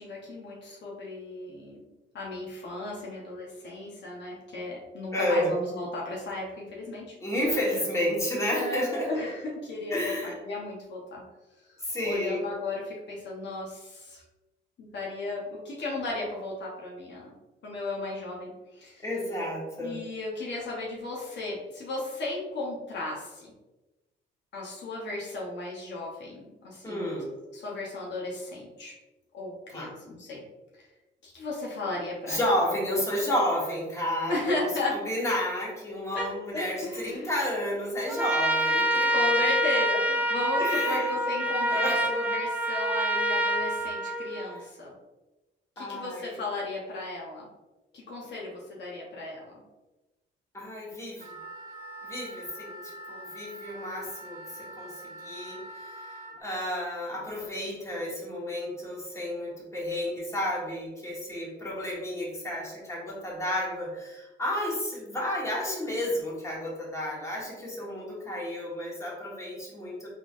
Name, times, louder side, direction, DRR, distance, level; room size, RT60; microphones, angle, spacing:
voice 1, 0.0-1.8 2.1-7.2 8.5-11.2 12.0-14.2 14.8-17.3 17.6-19.0 19.8-23.5 24.5-27.2 27.5-28.9 29.3-30.4 31.2-32.5 34.3-35.0 36.1-37.3 39.1-44.9 45.8-47.5 47.9-49.6, left 2 dB, 65° left, -3 dB, 1.0 m, -35 dB
voice 2, 5.1-5.5 7.2-9.2 9.9-10.3 11.8-12.5 19.0-20.0 26.8-27.3 29.7-29.9 32.3-34.6 34.9-39.2 40.6-41.1 41.7-42.1 44.5-44.6 45.8-46.4 50.5-51.3 52.0-70.1, left 1 dB, 15° left, -5 dB, 1.5 m, -31 dB
Trumpet, 38.1-44.6, right 1 dB, 10° right, 0.3 m, -26 dB
Wind instrument woodwind instrument, 51.2-56.4, right 1 dB, 45° right, 1.3 m, -44 dB
3.8 x 3.4 x 2.6 m, 1.1 s
cardioid pair, 90°, 20 cm